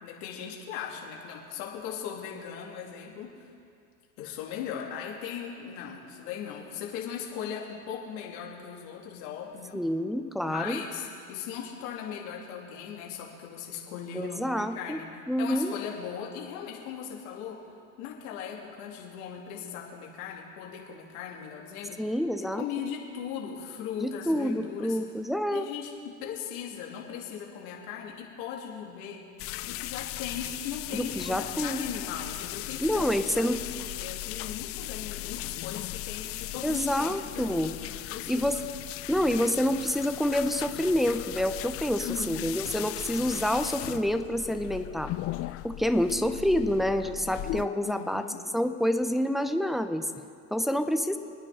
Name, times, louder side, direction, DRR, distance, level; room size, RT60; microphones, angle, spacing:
voice 1, 0.0-3.5 4.2-9.9 10.4-15.1 15.4-17.6 18.0-22.1 22.4-25.0 25.5-29.3 29.6-38.6 42.0-42.8 47.8-48.5, left 8 dB, 70° left, -1 dB, 3.0 m, -39 dB
voice 2, 9.7-10.8 14.1-15.0 15.3-15.7 22.0-22.6 24.0-25.7 30.9-31.8 32.8-33.6 36.6-37.7 38.3-38.6 39.1-45.1 45.6-48.2 48.5-50.1 50.5-51.2, equal, ahead, 8 dB, 0.7 m, -27 dB
sound 1, 29.4-47.7, left 17 dB, 35° left, 0.4 m, -37 dB
27.0 x 9.9 x 3.9 m, 2.4 s
hypercardioid pair, 95°, 44 cm